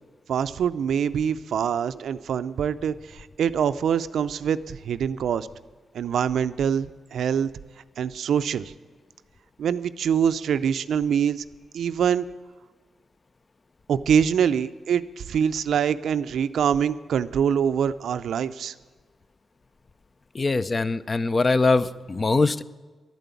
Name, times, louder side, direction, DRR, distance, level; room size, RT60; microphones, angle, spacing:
voice 1, 0.3-5.5 5.9-7.5 8.0-8.7 9.6-11.4 11.7-12.2 13.9-18.7, right 8 dB, 80° right, 14 dB, 0.4 m, -24 dB
voice 2, 20.3-22.6, left 3 dB, 30° left, 15 dB, 0.4 m, -22 dB
11.5 x 9.1 x 8.2 m, 1.4 s
cardioid pair, 105°, 0 cm